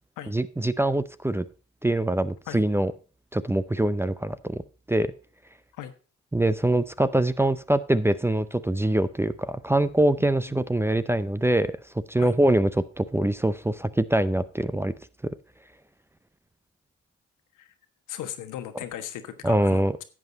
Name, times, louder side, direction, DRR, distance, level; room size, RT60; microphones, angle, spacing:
voice 1, 0.3-1.5 1.8-2.9 3.3-4.6 4.9-5.1 6.3-11.8 12.1-14.9 15.2-15.3 19.4-20.0, right 1 dB, 10° right, 15 dB, 0.5 m, -24 dB
voice 2, 18.1-20.0, left 11 dB, 85° left, 9 dB, 1.3 m, -37 dB
11.0 x 7.9 x 4.0 m, 0.35 s
cardioid pair, 90°, 30 cm